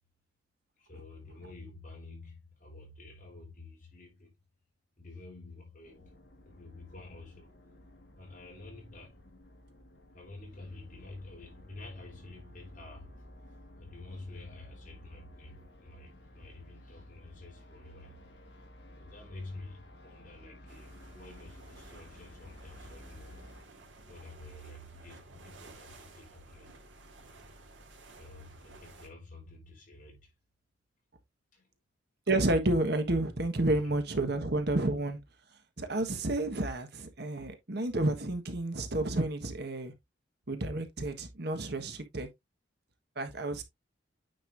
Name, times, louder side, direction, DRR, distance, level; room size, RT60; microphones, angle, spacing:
voice 1, 0.8-4.3 5.0-6.1 6.4-7.5 8.2-9.2 10.1-13.1 13.7-18.2 19.0-23.4 24.1-26.7 28.2-30.3 31.5-31.7 33.8-34.0, left 2 dB, 45° left, 4.2 m, -49 dB
sound 1, 5.8-23.6, left 1 dB, 60° left, 1.6 m, -53 dB
sound 2, 20.7-29.1, right 2 dB, 75° right, 2.5 m, -54 dB
voice 2, 32.3-35.2 35.8-39.9 40.5-42.3 43.1-43.6, right 2 dB, 60° right, 1.4 m, -30 dB
9.2 x 5.4 x 2.6 m
head